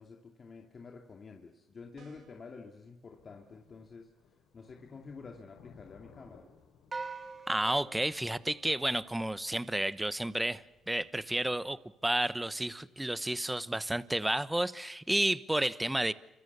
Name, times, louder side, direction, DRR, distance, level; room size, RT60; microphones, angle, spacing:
voice 1, 0.0-4.1 4.5-6.5, left 4 dB, 40° left, 2 dB, 2.7 m, -49 dB
sound 1, 1.9-2.5, right 5 dB, 65° right, 3.4 m, -58 dB
Thunder, 3.0-13.0, left 6 dB, 85° left, 6.1 m, -63 dB
sound 2, 6.9-9.4, right 4 dB, 30° right, 2.4 m, -44 dB
voice 2, 7.5-16.1, right 1 dB, 10° right, 15 dB, 1.1 m, -31 dB
28.0 x 25.0 x 7.0 m, 0.93 s
supercardioid pair, 80°, 0 cm